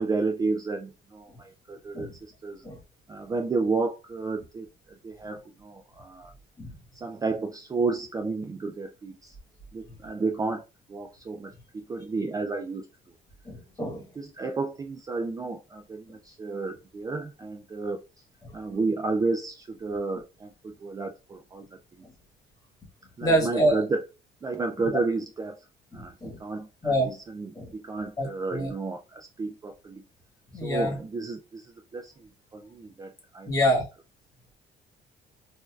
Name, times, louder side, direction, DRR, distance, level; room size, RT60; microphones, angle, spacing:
voice 1, 0.0-2.6 3.1-4.7 5.0-6.3 6.9-9.4 9.7-10.6 10.9-11.5 11.9-12.9 13.8-18.0 18.5-21.7 22.0-22.1 23.2-24.0 24.4-25.6 25.9-26.1 26.4-27.5 27.8-30.0 30.6-33.6, right 3 dB, 20° right, 4 dB, 0.4 m, -31 dB
voice 2, 13.4-14.0 18.4-18.5 23.2-23.8 25.9-26.4 26.8-27.2 27.5-27.7 28.2-28.7 30.5-31.0 33.5-33.9, equal, 20° left, 1 dB, 1.4 m, -26 dB
4.1 x 2.6 x 2.3 m, 0.30 s
cardioid pair, 110°, 17 cm